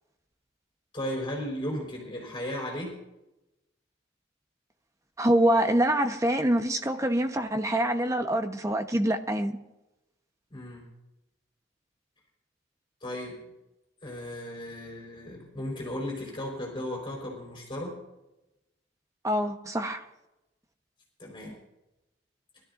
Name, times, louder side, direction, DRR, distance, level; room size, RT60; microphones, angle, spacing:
voice 1, 0.9-3.0 10.5-10.8 13.0-13.5 14.0-18.0 21.2-21.6, left 1 dB, 25° left, 4.4 m, -35 dB
voice 2, 5.2-9.6 19.2-20.0, right 1 dB, 15° right, 1.0 m, -25 dB
23.5 x 13.5 x 2.6 m
head